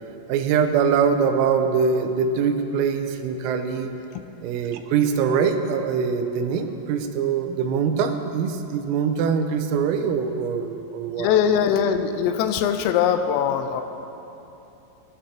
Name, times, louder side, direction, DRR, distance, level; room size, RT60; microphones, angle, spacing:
voice 1, 0.3-3.9 4.4-11.3, right 6 dB, 85° right, 7 dB, 3.5 m, -23 dB
voice 2, 11.2-13.8, left 8 dB, 85° left, 8 dB, 3.3 m, -21 dB
29.0 x 10.5 x 2.9 m, 2.9 s
omnidirectional pair, 5.9 m